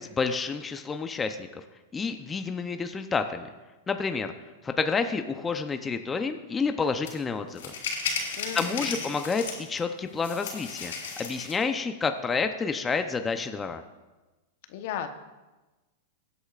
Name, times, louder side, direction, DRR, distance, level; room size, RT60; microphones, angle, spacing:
voice 1, 0.0-1.6 1.9-3.5 3.9-4.3 4.6-7.6 8.5-10.9 11.2-13.8, left 5 dB, 20° left, 7 dB, 0.7 m, -29 dB
sound 1, 7.1-7.2 7.5-9.8 10.2-11.6, left 5 dB, 75° left, 3.6 m, -34 dB
voice 2, 8.3-9.2 14.7-15.1, left 9 dB, 60° left, 7 dB, 1.0 m, -36 dB
21.5 x 8.1 x 2.5 m, 1.2 s
hypercardioid pair, 115°, 0 cm